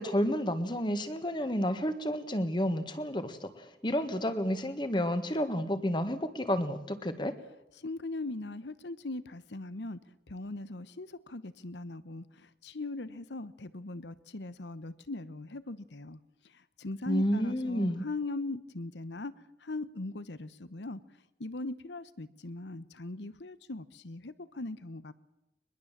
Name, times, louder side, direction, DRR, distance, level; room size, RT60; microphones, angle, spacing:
voice 1, 0.0-7.3 17.1-18.0, equal, 25° left, 10 dB, 1.7 m, -30 dB
voice 2, 7.8-10.0 10.3-19.3 19.6-21.0 21.4-25.1, left 2 dB, 80° left, 16 dB, 1.0 m, -40 dB
22.5 x 21.0 x 7.4 m, 0.93 s
head